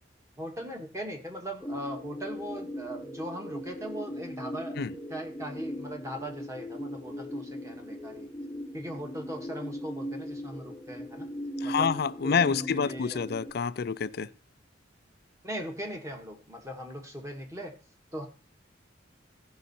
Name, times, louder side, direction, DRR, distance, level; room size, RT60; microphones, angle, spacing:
voice 1, 0.4-4.8 5.1-8.3 8.7-11.3 11.6-11.9 12.2-13.3 15.4-17.8 18.1-18.3, right 1 dB, 15° right, 1.5 m, -39 dB
sound 1, 1.6-13.5, equal, 10° left, 0.8 m, -39 dB
voice 2, 11.6-14.3, left 6 dB, 55° left, 0.4 m, -28 dB
15.5 x 5.5 x 4.2 m
head